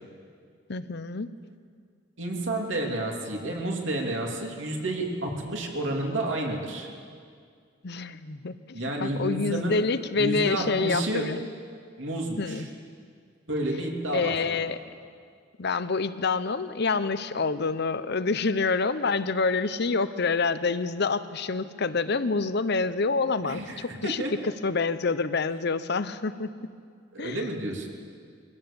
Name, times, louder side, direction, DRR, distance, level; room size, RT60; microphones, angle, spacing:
voice 1, 0.7-1.3 7.8-11.4 12.4-12.7 14.1-14.8 15.6-26.5 27.2-27.4, left 4 dB, 60° left, 13 dB, 0.8 m, -27 dB
voice 2, 2.2-6.9 8.7-9.8 10.1-11.3 12.0-12.7 13.5-14.6 23.4-24.3 27.1-27.9, right 1 dB, 70° right, 0 dB, 3.1 m, -30 dB
24.0 x 16.0 x 7.1 m, 2.2 s
head